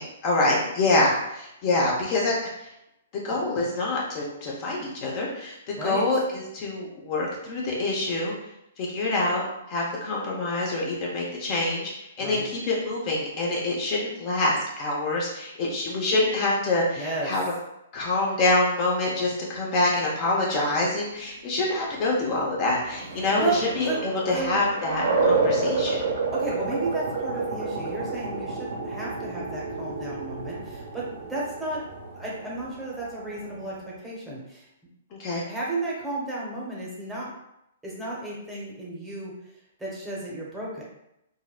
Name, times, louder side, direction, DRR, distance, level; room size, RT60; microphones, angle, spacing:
voice 1, 0.0-2.4 3.2-8.3 8.8-9.4 9.7-17.4 17.9-26.0 35.1-35.4, left 2 dB, 35° left, -3 dB, 0.8 m, -26 dB
voice 2, 12.2-12.5 17.0-17.3 23.1-24.0 24.3-24.6 26.3-31.8 32.1-34.7 35.3-37.3 37.8-39.3 39.8-40.8, right 2 dB, 5° right, -6 dB, 0.9 m, -33 dB
sound 1, 22.4-33.8, right 3 dB, 65° right, 0.7 m, -30 dB
3.8 x 2.1 x 2.4 m, 0.84 s
figure-of-eight pair, 120°, 0 cm